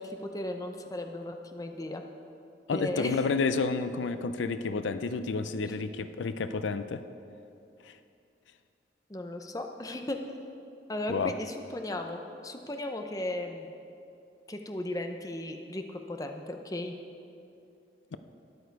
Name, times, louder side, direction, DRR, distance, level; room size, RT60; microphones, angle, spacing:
voice 1, 0.0-2.0 2.7-3.2 9.1-10.3 10.9-13.7 14.5-16.9, left 1 dB, 20° left, 4 dB, 0.6 m, -36 dB
voice 2, 2.7-7.0 7.8-8.0 11.1-11.3 18.1-18.2, left 4 dB, 85° left, 11 dB, 0.5 m, -30 dB
12.5 x 10.5 x 4.7 m, 2.7 s
head